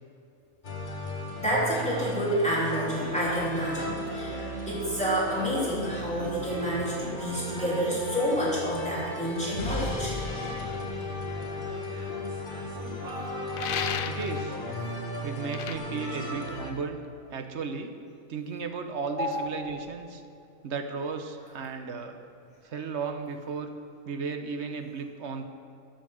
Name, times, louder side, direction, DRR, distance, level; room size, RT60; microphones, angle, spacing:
sound 1, 0.6-16.7, left 1 dB, 40° left, 1.4 m, -35 dB
sound 2, 1.1-1.2 1.6-3.5 3.7-9.6 10.2-14.7, right 3 dB, 85° right, 1.8 m, -43 dB
voice 1, 1.4-10.2 19.1-19.4, equal, 5° left, -8 dB, 3.2 m, -29 dB
sound 3, 13.5-14.4 15.5-15.8, left 8 dB, 60° left, 0.6 m, -32 dB
voice 2, 14.1-14.6 15.2-17.0 17.3-17.9 18.3-20.2 20.6-22.2 22.6-23.7 24.1-25.4, right 5 dB, 60° right, 7 dB, 1.1 m, -34 dB
12.5 x 7.1 x 6.0 m, 2.5 s
omnidirectional pair, 1.4 m